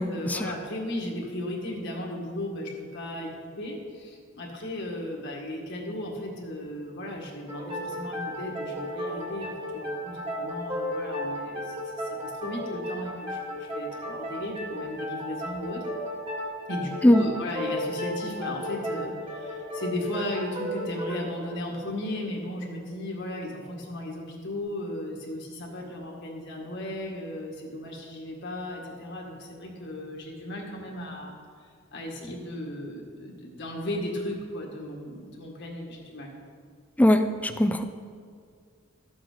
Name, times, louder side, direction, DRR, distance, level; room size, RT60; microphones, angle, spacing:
voice 1, 0.0-15.8 16.7-31.4 31.9-36.3, left 1 dB, 60° left, -1 dB, 1.8 m, -36 dB
sound 1, 7.5-22.8, equal, 25° right, 1.9 m, -34 dB
voice 2, 37.0-37.8, left 1 dB, 5° left, 8 dB, 0.5 m, -20 dB
13.0 x 8.0 x 3.9 m, 2.1 s
head